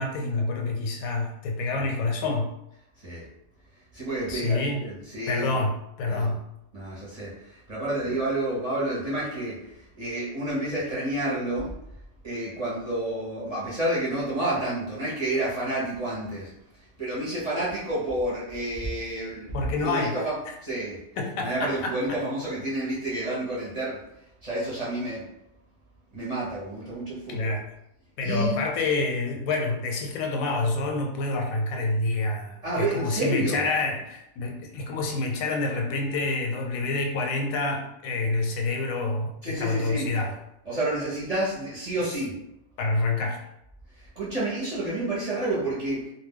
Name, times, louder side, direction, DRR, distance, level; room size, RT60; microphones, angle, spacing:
voice 1, 0.0-2.5 4.3-4.8 5.3-6.5 19.5-20.1 20.5-20.6 21.2-22.2 27.3-27.7 28.2-40.4 42.8-43.4, left 3 dB, 90° left, 2 dB, 1.0 m, -27 dB
voice 2, 3.9-5.6 6.1-6.3 6.7-11.7 12.2-16.5 17.0-19.5 19.8-20.4 20.6-21.0 21.4-24.0 24.4-25.2 26.1-27.5 28.2-28.6 32.6-33.6 39.4-40.1 40.7-42.3 44.0-46.1, right 1 dB, 35° right, -8 dB, 0.7 m, -29 dB
2.2 x 2.2 x 3.5 m, 0.82 s
omnidirectional pair, 1.4 m